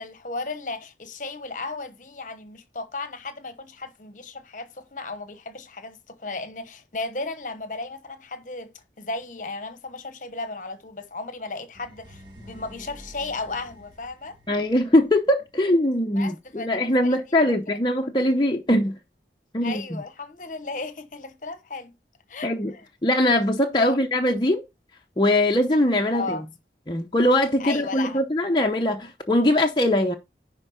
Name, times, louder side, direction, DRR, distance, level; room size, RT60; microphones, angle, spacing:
voice 1, 0.0-14.4 16.2-17.2 17.4-17.5 19.6-22.0 22.3-22.9 23.8-24.0 26.1-26.4 27.6-28.2, left 3 dB, 45° left, 1.0 m, -35 dB
sound 1, 11.7-15.6, equal, 25° right, 1.6 m, -48 dB
voice 2, 14.5-19.0 19.5-19.8 22.4-22.7 23.0-24.6 25.2-26.4 26.9-30.1, left 1 dB, 25° left, 0.8 m, -21 dB
10.5 x 4.5 x 4.0 m
head